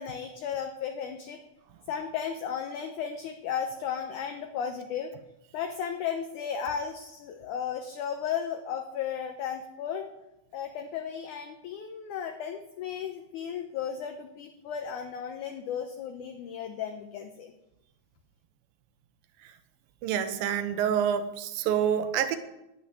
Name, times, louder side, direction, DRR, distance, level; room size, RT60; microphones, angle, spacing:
voice 1, 0.0-1.4 1.9-5.1 5.5-10.1 10.5-17.5, left 8 dB, 70° left, 5 dB, 2.1 m, -34 dB
voice 2, 20.0-22.4, right 9 dB, 90° right, 10 dB, 2.7 m, -27 dB
10.0 x 9.2 x 9.2 m, 0.91 s
omnidirectional pair, 4.1 m